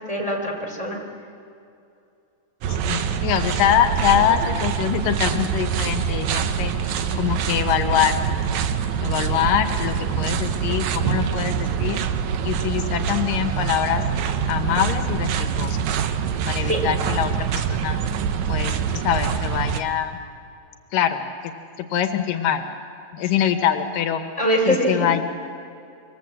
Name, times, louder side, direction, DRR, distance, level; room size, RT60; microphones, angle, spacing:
voice 1, 0.1-1.0 6.8-7.1 16.7-16.8 24.4-25.0, equal, 10° right, 0 dB, 3.2 m, -23 dB
sound 1, 2.6-19.8, right 7 dB, 70° right, 2.1 m, -25 dB
voice 2, 2.7-6.7 7.1-8.1 9.0-12.0 12.4-14.0 14.5-16.0 16.5-18.0 18.5-20.2 20.9-21.2 21.8-22.7 23.1-24.2 24.7-25.3, left 10 dB, 75° left, 8 dB, 2.6 m, -24 dB
25.0 x 23.5 x 7.6 m, 2.6 s
omnidirectional pair, 4.0 m